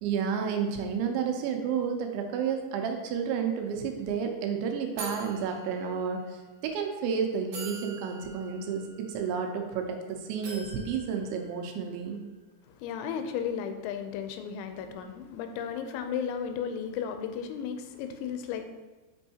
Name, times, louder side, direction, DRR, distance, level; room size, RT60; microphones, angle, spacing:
voice 1, 0.0-12.2, right 6 dB, 80° right, 4 dB, 3.0 m, -31 dB
sound 1, 3.6-3.7 4.0-4.2 5.0-6.4 7.0-7.1 7.5-9.9 10.4-12.1, right 2 dB, 65° right, 2.3 m, -44 dB
voice 2, 12.7-18.6, left 7 dB, 85° left, 7 dB, 2.9 m, -34 dB
7.1 x 5.3 x 2.8 m, 1.2 s
omnidirectional pair, 5.4 m